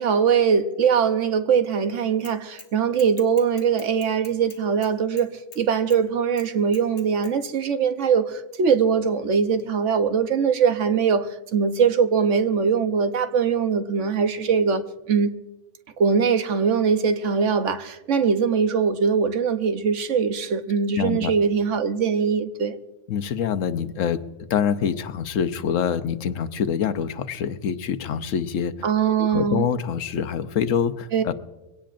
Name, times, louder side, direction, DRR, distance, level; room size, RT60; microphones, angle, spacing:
voice 1, 0.0-15.3 16.0-22.8 28.8-29.7 31.1-31.2, right 6 dB, 70° right, 1.2 m, -22 dB
Bicycle / Mechanisms, 2.2-2.7 3.0-5.6 5.9-6.0 6.4-7.3, left 5 dB, 70° left, 1.6 m, -45 dB
voice 2, 21.0-21.3 23.1-24.2 24.5-28.7 29.2-31.3, left 7 dB, 85° left, 1.1 m, -25 dB
23.0 x 17.5 x 2.5 m
omnidirectional pair, 1.3 m